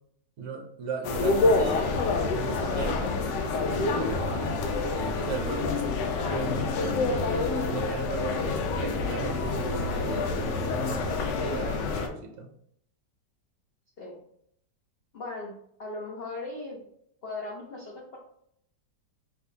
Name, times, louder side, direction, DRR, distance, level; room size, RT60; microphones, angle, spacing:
voice 1, 0.4-3.2 3.7-4.6 4.9-5.8 6.2-12.5, right 4 dB, 65° right, 2 dB, 0.8 m, -37 dB
sound 1, 1.0-12.1, left 3 dB, 85° left, 1.3 m, -27 dB
voice 2, 15.1-16.9 17.2-18.2, left 2 dB, 65° left, -1 dB, 0.6 m, -38 dB
4.5 x 3.3 x 2.8 m, 0.71 s
omnidirectional pair, 1.9 m